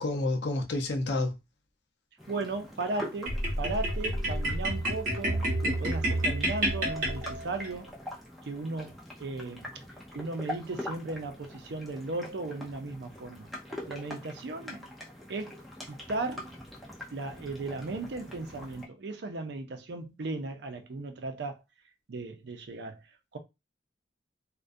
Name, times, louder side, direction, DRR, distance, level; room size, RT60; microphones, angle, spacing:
voice 1, 0.0-1.3, left 2 dB, 70° left, 0.5 m, -29 dB
sound 1, 2.2-18.9, left 1 dB, ahead, 0.5 m, -44 dB
voice 2, 2.3-7.9 8.4-8.9 9.2-9.7 10.1-13.5 13.9-14.9 15.3-15.6 15.9-16.6 17.1-21.6 22.1-23.0 23.3-23.4, right 3 dB, 65° right, 0.4 m, -36 dB
sound 2, 3.3-7.7, right 1 dB, 45° right, 1.0 m, -29 dB
2.4 x 2.1 x 2.5 m
head